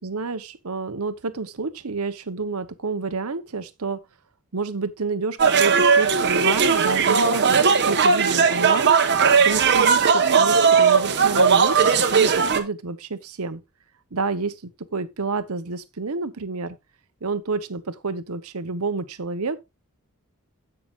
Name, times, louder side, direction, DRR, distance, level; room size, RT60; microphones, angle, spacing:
voice 1, 0.0-4.0 4.5-13.6 14.1-16.8 17.2-19.6, right 4 dB, 70° right, 1.0 m, -29 dB
sound 1, 5.4-12.6, right 5 dB, 50° right, 1.1 m, -18 dB
16.5 x 5.9 x 2.4 m
head